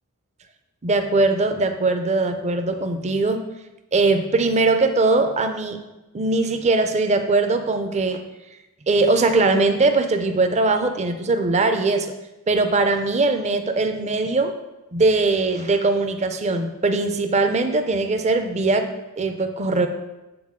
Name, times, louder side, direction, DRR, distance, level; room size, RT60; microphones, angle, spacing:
voice 1, 0.8-3.4 3.9-5.8 6.1-8.2 8.9-12.1 12.5-14.5 14.9-19.9, right 3 dB, 30° right, 8 dB, 0.5 m, -21 dB
8.7 x 3.9 x 3.6 m, 1.0 s
head